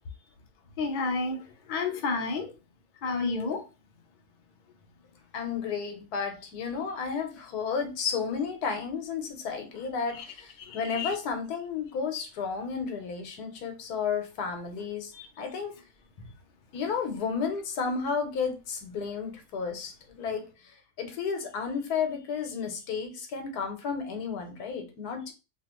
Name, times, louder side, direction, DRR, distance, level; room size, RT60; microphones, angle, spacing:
voice 1, 0.8-1.4 1.7-2.5 3.0-3.6 10.6-11.1 15.1-15.3, left 4 dB, 65° left, 0.4 m, -30 dB
voice 2, 5.3-15.1 15.4-15.7 16.7-20.5 21.0-25.3, left 6 dB, 85° left, 1.3 m, -32 dB
3.0 x 2.4 x 2.9 m
omnidirectional pair, 1.6 m